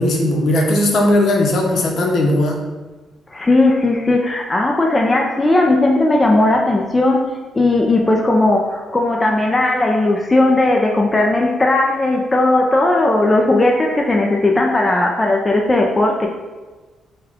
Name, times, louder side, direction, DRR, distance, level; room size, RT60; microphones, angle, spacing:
voice 1, 0.0-2.6, left 1 dB, 60° left, 1 dB, 0.8 m, -17 dB
voice 2, 3.3-7.2 7.5-16.3, left 2 dB, 20° left, 0 dB, 0.5 m, -16 dB
5.2 x 2.3 x 3.4 m, 1.3 s
cardioid pair, 90°, 0 cm